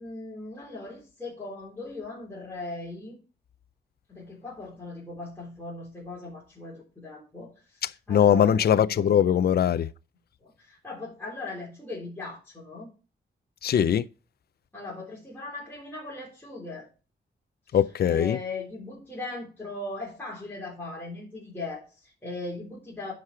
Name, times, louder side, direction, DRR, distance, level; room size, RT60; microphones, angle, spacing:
voice 1, 0.0-3.2 4.1-8.5 10.4-12.9 14.7-16.9 18.1-23.1, left 2 dB, 10° left, 3.6 m, -38 dB
voice 2, 8.1-9.9 13.6-14.1 17.7-18.4, left 9 dB, 55° left, 0.4 m, -21 dB
10.5 x 4.9 x 5.7 m
wide cardioid pair, 130°, 19 cm